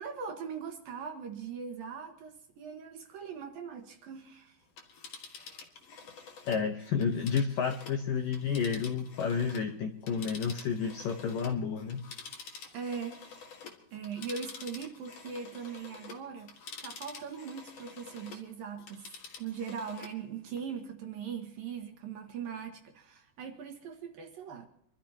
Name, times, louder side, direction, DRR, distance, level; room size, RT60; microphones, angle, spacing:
voice 1, 0.0-4.6 12.7-13.5 13.9-16.5 16.8-19.1 19.4-24.7, right 6 dB, 65° right, 4 dB, 2.5 m, -40 dB
Telephone, 4.6-9.7 10.0-18.5 18.8-20.2 20.6-20.7, left 5 dB, 55° left, 2.0 m, -48 dB
voice 2, 6.5-12.0, left 6 dB, 80° left, 5 dB, 2.0 m, -31 dB
26.0 x 13.5 x 2.9 m, 0.72 s
omnidirectional pair, 5.3 m